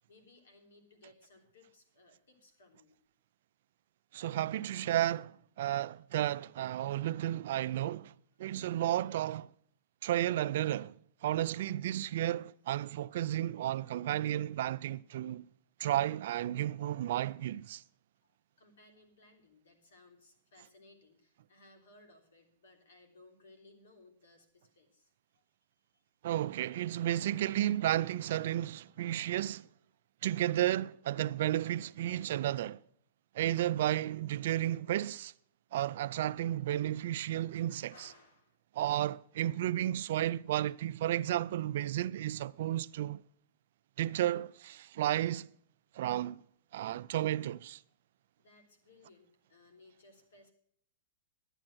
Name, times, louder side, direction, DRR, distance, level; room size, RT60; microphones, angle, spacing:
voice 1, 0.0-3.0 18.2-26.0 37.9-38.6 48.4-50.5, left 2 dB, 90° left, 3.3 m, -61 dB
voice 2, 4.1-8.1 8.4-9.5 10.0-11.0 11.2-15.4 15.8-17.8 26.2-29.7 30.2-32.8 33.3-35.3 35.7-38.1 38.7-43.2 44.0-45.5 45.9-46.4 46.7-47.8, right 13 dB, 65° right, 0.4 m, -33 dB
11.5 x 9.0 x 6.2 m
hypercardioid pair, 145°, 0 cm